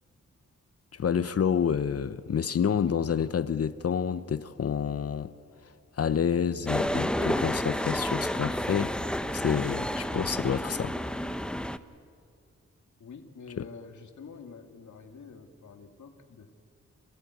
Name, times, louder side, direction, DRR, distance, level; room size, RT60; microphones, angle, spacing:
voice 1, 0.9-5.3 6.0-8.9 9.3-11.0 13.6-13.7, left 7 dB, 55° left, 0.7 m, -28 dB
sound 1, 6.7-11.8, equal, 5° left, 0.7 m, -30 dB
voice 2, 13.0-16.5, left 5 dB, 85° left, 1.8 m, -47 dB
28.0 x 14.5 x 9.4 m
wide cardioid pair, 95°, 29 cm